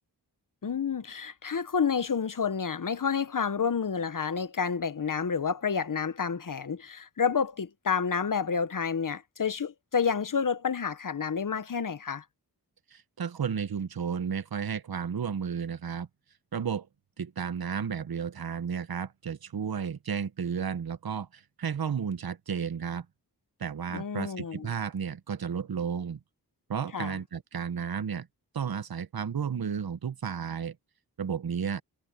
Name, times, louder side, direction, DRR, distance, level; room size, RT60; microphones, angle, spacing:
voice 1, 0.6-12.2 23.9-24.7 26.9-27.2, left 6 dB, 55° left, 1.0 m, -29 dB
voice 2, 12.9-16.1 16.5-16.9 17.2-23.1 23.6-26.2 26.7-28.3 28.5-30.8 31.2-31.8, right 7 dB, 65° right, 0.9 m, -33 dB
wide cardioid pair, 90°, 39 cm